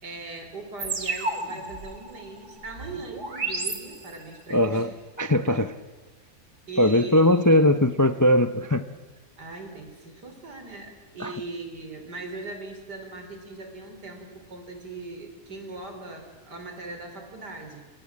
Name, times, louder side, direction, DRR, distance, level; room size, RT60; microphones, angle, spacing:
voice 1, 0.0-4.9 5.3-5.6 6.7-7.6 9.4-17.8, right 3 dB, 80° right, 5 dB, 4.8 m, -40 dB
sound 1, 0.8-4.5, right 3 dB, 65° right, 3.4 m, -33 dB
voice 2, 4.5-4.9 5.2-5.7 6.8-8.8 11.2-11.3, left 1 dB, 20° left, 10 dB, 0.4 m, -20 dB
27.0 x 26.0 x 7.5 m, 1.3 s
omnidirectional pair, 1.7 m